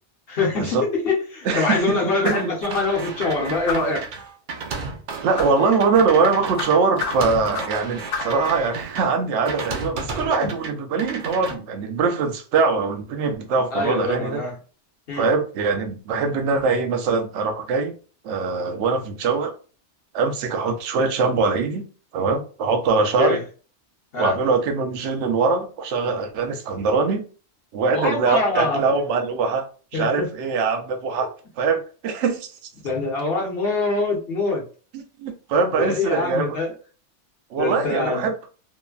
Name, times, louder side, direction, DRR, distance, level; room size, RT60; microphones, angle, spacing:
voice 1, 0.3-4.0 13.7-14.6 15.1-15.2 23.2-23.4 24.1-24.3 27.9-28.8 29.9-30.3 32.8-34.6 35.7-36.7 37.6-38.3, left 3 dB, 60° left, 1.0 m, -24 dB
voice 2, 1.4-2.0 2.2-2.4 5.2-14.4 15.1-18.0 18.2-19.5 20.1-21.9 22.1-23.4 24.2-27.3 27.7-29.7 29.9-31.3 31.6-32.5 34.9-36.6 37.5-38.5, right 4 dB, 80° right, 0.9 m, -22 dB
sound 1, 2.2-2.6 3.7-4.0 5.4-5.6 6.6-7.8 8.1-8.4, left 5 dB, 80° left, 1.0 m, -30 dB
sound 2, 2.6-9.0 9.5-10.7 11.0-11.6, right 4 dB, 55° right, 0.6 m, -33 dB
3.1 x 2.1 x 2.3 m
omnidirectional pair, 1.2 m